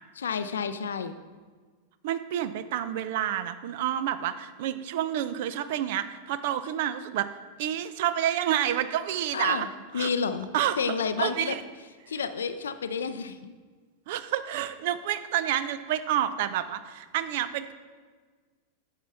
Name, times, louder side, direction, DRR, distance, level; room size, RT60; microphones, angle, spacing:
voice 1, 0.2-1.2 9.3-9.7 9.9-10.5 10.8-11.6 12.1-13.5, left 6 dB, 65° left, 11 dB, 0.5 m, -30 dB
voice 2, 2.0-7.3 7.6-9.7 9.9-10.1 10.5-10.8 11.2-11.6 14.1-17.7, right 11 dB, 50° right, 12 dB, 0.4 m, -29 dB
9.3 x 7.2 x 3.4 m, 1.4 s
figure-of-eight pair, 90°, 0 cm